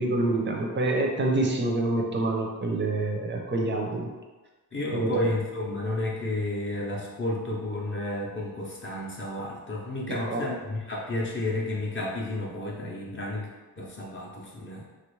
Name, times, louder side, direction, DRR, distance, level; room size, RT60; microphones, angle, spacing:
voice 1, 0.0-4.1 4.9-5.2 10.1-10.4, right 2 dB, 30° right, 1 dB, 0.4 m, -27 dB
voice 2, 4.7-13.5 13.8-14.8, left 1 dB, 30° left, -4 dB, 0.5 m, -31 dB
3.2 x 2.3 x 3.0 m, 1.2 s
wide cardioid pair, 170°, 38 cm